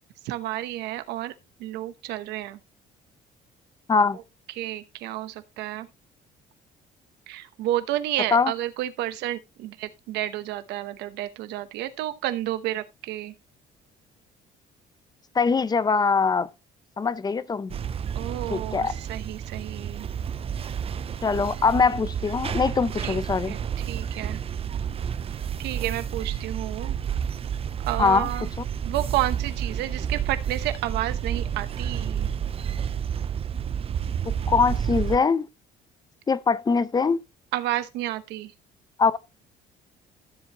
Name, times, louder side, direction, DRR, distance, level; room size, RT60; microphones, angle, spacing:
voice 1, 0.2-1.3 1.6-2.6 4.5-5.9 7.3-13.3 18.1-20.1 23.0-23.2 23.5-24.4 25.6-27.0 27.8-28.5 28.8-32.3 37.5-38.5, right 14 dB, 90° right, 1.0 m, -31 dB
voice 2, 15.3-16.5 17.0-17.7 18.5-18.9 21.2-23.6 28.0-28.3 34.3-35.5 36.3-37.2 39.0-39.2, left 5 dB, 25° left, 0.7 m, -22 dB
sound 1, 17.7-35.2, right 8 dB, 35° right, 0.6 m, -30 dB
13.5 x 7.3 x 3.0 m
cardioid pair, 110°, 17 cm